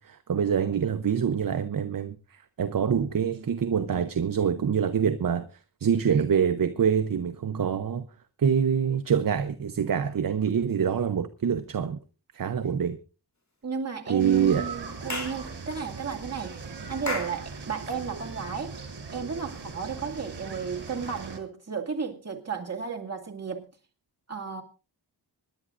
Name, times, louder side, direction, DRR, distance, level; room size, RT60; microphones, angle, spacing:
voice 1, 0.0-5.4 5.8-8.1 8.4-12.0 12.3-13.0 14.1-14.6, right 7 dB, 55° right, 0.8 m, -25 dB
voice 2, 13.6-18.8 19.1-23.7 24.3-24.6, right 6 dB, 40° right, 2.3 m, -34 dB
sound 1, 14.2-21.4, right 4 dB, 70° right, 3.1 m, -40 dB
Clapping / Chirp tweet, 15.1-15.4 17.1-17.4, left 2 dB, 40° left, 3.3 m, -32 dB
26.0 x 11.0 x 2.5 m
wide cardioid pair, 85°, 41 cm